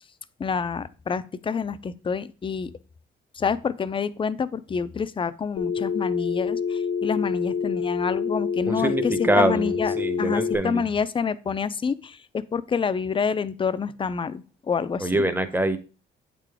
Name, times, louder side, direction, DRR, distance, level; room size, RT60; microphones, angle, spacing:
voice 1, 0.4-2.7 3.4-15.3, left 6 dB, 25° left, 0.4 m, -28 dB
Telephone, 5.6-10.6, left 6 dB, 80° left, 1.0 m, -27 dB
voice 2, 8.7-10.8 15.0-15.8, right 1 dB, 10° right, 0.7 m, -24 dB
8.2 x 3.8 x 3.4 m
cardioid pair, 90°, 20 cm